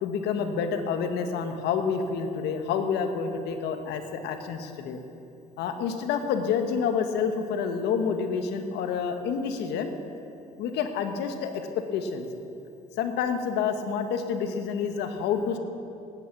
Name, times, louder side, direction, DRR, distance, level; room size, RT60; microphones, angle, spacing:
voice 1, 0.0-5.0 5.6-9.9 10.6-11.6 11.9-12.3 13.0-15.6, left 6 dB, 85° left, 6 dB, 1.3 m, -28 dB
18.0 x 9.4 x 6.0 m, 2.7 s
cardioid pair, 110°, 17 cm